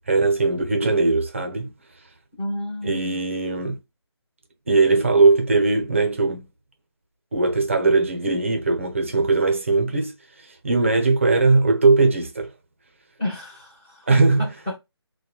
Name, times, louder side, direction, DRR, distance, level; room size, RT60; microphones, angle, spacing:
voice 1, 0.1-1.7 2.0-2.1 2.8-3.8 4.7-6.5 7.3-12.5 14.1-14.5, right 3 dB, 30° right, 0.6 m, -20 dB
voice 2, 2.4-3.2 13.2-14.8, left 1 dB, 5° left, 0.7 m, -31 dB
3.0 x 2.2 x 2.3 m
figure-of-eight pair, 170°, 14 cm